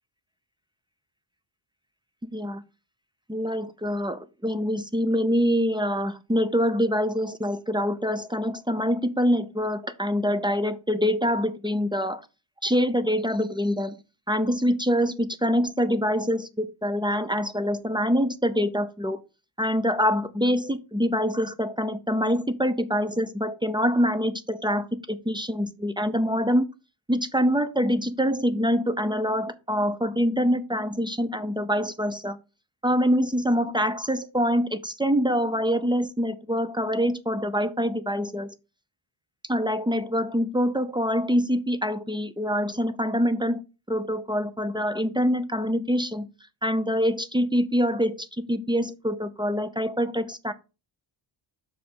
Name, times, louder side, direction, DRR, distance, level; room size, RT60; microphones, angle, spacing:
voice 1, 2.3-2.6 3.3-12.2 12.6-14.0 14.3-19.2 19.6-26.7 27.1-32.4 32.8-38.5 39.5-43.6 43.9-46.3 46.6-50.5, equal, 10° right, 0.5 m, -25 dB
6.3 x 4.9 x 5.2 m
wide cardioid pair, 145°, 48 cm